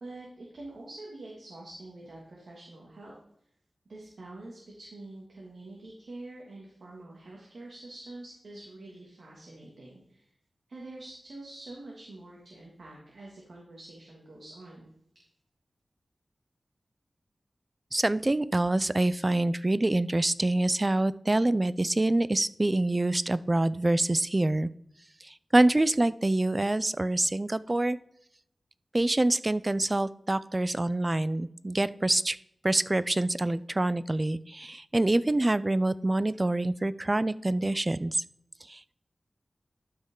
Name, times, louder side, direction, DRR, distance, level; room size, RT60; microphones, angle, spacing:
voice 1, 0.0-3.1 3.9-10.3 10.7-14.9, right 2 dB, 75° right, -3 dB, 2.0 m, -46 dB
voice 2, 17.9-24.7 25.5-28.0 28.9-32.4 32.6-38.2 38.7-38.9, right 2 dB, 30° right, 16 dB, 0.4 m, -26 dB
12.0 x 5.5 x 3.7 m, 0.70 s
wide cardioid pair, 65°, 0 cm